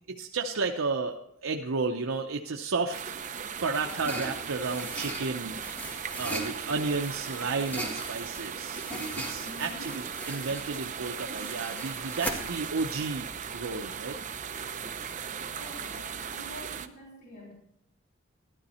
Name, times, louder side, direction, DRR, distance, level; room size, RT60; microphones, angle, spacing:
voice 1, 0.0-3.0 3.6-5.6 6.2-8.8 9.2-13.3 13.5-14.2, right 4 dB, 80° right, 3 dB, 0.7 m, -32 dB
sound 1, 2.9-16.9, right 7 dB, 40° right, 0.7 m, -38 dB
sound 2, 3.3-13.9, right 1 dB, 10° left, 1.9 m, -40 dB
voice 2, 9.4-10.2 15.2-17.5, left 1 dB, 55° left, -5 dB, 3.6 m, -46 dB
12.5 x 12.5 x 4.3 m, 0.77 s
head